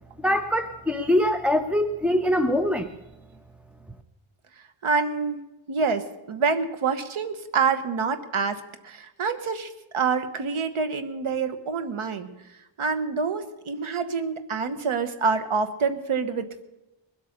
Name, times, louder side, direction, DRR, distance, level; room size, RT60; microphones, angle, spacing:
voice 1, 0.2-2.9, left 1 dB, 5° right, 8 dB, 0.5 m, -23 dB
voice 2, 4.8-5.4 5.7-12.3 12.8-16.6, right 5 dB, 75° right, 10 dB, 1.2 m, -27 dB
21.5 x 8.3 x 6.5 m, 0.97 s
wide cardioid pair, 120°, 50 cm